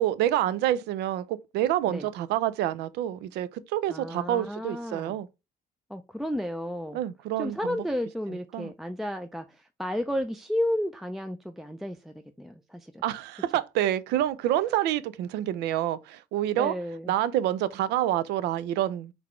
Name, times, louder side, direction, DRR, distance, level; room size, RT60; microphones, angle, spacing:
voice 1, 0.0-5.3 6.9-7.8 8.5-8.7 13.0-16.7 17.1-19.1, right 12 dB, 85° right, 0.5 m, -27 dB
voice 2, 3.9-5.2 5.9-7.0 7.4-13.0 16.6-17.1, left 1 dB, ahead, 0.3 m, -32 dB
3.9 x 3.4 x 3.1 m
cardioid pair, 110°, 17 cm